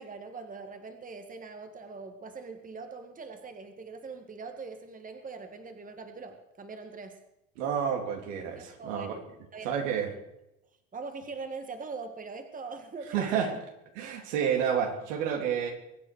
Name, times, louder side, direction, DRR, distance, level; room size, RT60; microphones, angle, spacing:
voice 1, 0.0-7.2 8.6-9.2 9.5-9.8 10.1-10.2 10.9-13.6, right 4 dB, 20° right, 7 dB, 1.9 m, -42 dB
voice 2, 7.6-9.1 9.6-10.1 13.1-13.5 14.0-15.7, right 8 dB, 75° right, 3 dB, 3.6 m, -29 dB
23.0 x 8.8 x 6.4 m, 0.86 s
hypercardioid pair, 95°, 38 cm